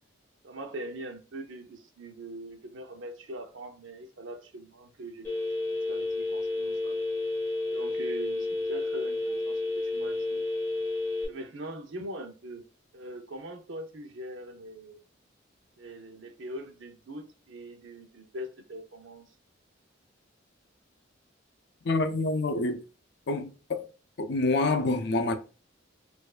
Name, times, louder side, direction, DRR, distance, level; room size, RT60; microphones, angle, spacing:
voice 1, 0.4-5.3 5.9-7.0 7.7-10.4 11.3-12.7 12.9-15.0 15.8-19.3, right 1 dB, 80° right, 0.7 m, -42 dB
Telephone, 5.2-11.3, left 2 dB, 15° left, 1.4 m, -31 dB
voice 2, 21.8-22.8 23.3-23.9 24.2-25.3, left 2 dB, 60° left, 0.5 m, -27 dB
4.3 x 2.6 x 2.4 m
head